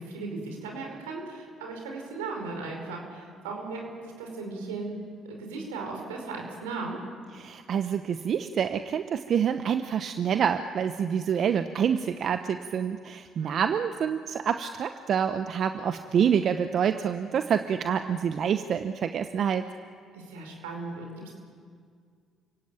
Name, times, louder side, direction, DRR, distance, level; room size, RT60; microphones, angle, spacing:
voice 1, 0.0-5.0 5.3-7.0 13.4-13.8 20.1-21.3, right 3 dB, 90° right, 2 dB, 5.3 m, -37 dB
voice 2, 7.4-19.7, right 8 dB, 60° right, 9 dB, 1.0 m, -27 dB
29.5 x 17.0 x 9.0 m, 2.1 s
hypercardioid pair, 55°, 0 cm